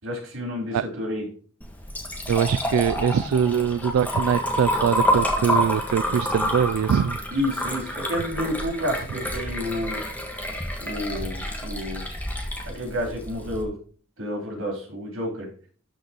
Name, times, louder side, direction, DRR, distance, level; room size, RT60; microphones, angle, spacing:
voice 1, 0.0-1.2 7.3-10.0 10.8-12.0 12.7-13.7 14.2-15.5, equal, 65° right, 0 dB, 4.0 m, -30 dB
Liquid, 1.6-13.6, equal, 10° left, 1.4 m, -28 dB
voice 2, 2.3-7.2, right 8 dB, 85° right, 15 dB, 0.3 m, -23 dB
12.5 x 5.4 x 3.0 m, 0.42 s
head